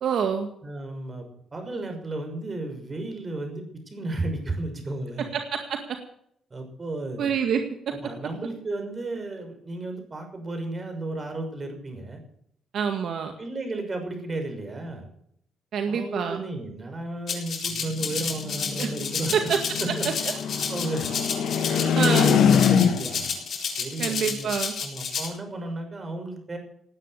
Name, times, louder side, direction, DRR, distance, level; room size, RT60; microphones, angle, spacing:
voice 1, 0.0-0.5 5.3-5.8 7.2-7.6 12.7-13.3 15.7-16.4 18.8-18.9 19.3-19.6 21.9-22.4 24.0-24.7, right 7 dB, 65° right, 5 dB, 1.9 m, -26 dB
voice 2, 0.6-1.3 1.5-5.3 6.5-7.3 7.9-12.2 13.4-15.1 15.9-19.5 19.8-20.3 20.7-21.1 21.7-23.2 23.8-24.5 24.8-26.6, right 2 dB, 30° right, 5 dB, 6.1 m, -33 dB
Rattle (instrument), 17.3-25.3, left 5 dB, 50° left, 6.9 m, -31 dB
sound 1, 17.8-23.3, left 8 dB, 70° left, 1.3 m, -24 dB
18.0 x 9.7 x 6.6 m, 0.68 s
cardioid pair, 90°, 0 cm